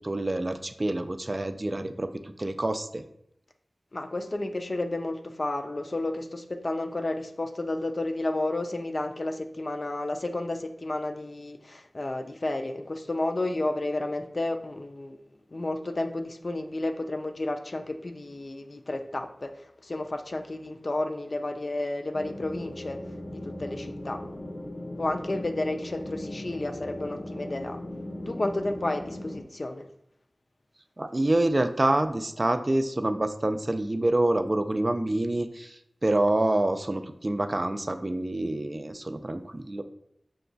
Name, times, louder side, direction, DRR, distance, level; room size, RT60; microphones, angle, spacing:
voice 1, 0.0-3.0 31.0-39.8, right 1 dB, 35° right, 8 dB, 0.4 m, -27 dB
voice 2, 3.9-15.2 15.5-23.0 23.3-24.2 25.0-27.8 28.3-29.9, left 2 dB, 55° left, 6 dB, 0.4 m, -31 dB
sound 1, 22.1-29.4, left 1 dB, 75° left, 0.8 m, -38 dB
6.0 x 2.3 x 3.8 m, 0.76 s
wide cardioid pair, 60°, 0 cm